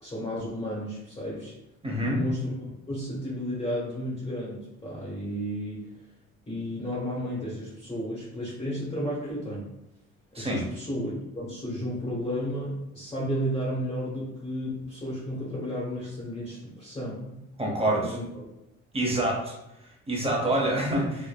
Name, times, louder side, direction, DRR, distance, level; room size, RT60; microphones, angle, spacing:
voice 1, 0.0-1.5 2.0-5.9 6.5-9.7 10.3-17.4 17.9-18.2, equal, 15° left, -7 dB, 0.9 m, -33 dB
voice 2, 1.8-2.2 10.3-10.6 17.6-18.2 18.9-19.5 19.8-21.3, right 1 dB, 20° right, -2 dB, 0.9 m, -27 dB
3.2 x 2.1 x 2.2 m, 0.89 s
cardioid pair, 90°, 30 cm